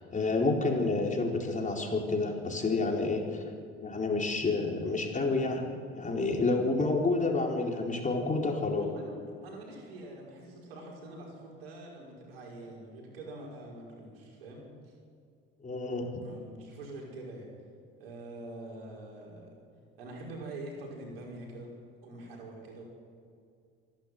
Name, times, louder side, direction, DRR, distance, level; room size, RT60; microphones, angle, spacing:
voice 1, 0.1-3.4 3.8-8.9 15.6-16.1, left 3 dB, 25° left, 1 dB, 4.5 m, -29 dB
voice 2, 8.7-14.9 16.2-17.5 18.0-19.5 20.0-21.7 22.0-22.8, right 2 dB, 90° right, -2 dB, 5.8 m, -45 dB
26.0 x 12.0 x 9.6 m, 2.3 s
hypercardioid pair, 75°, 29 cm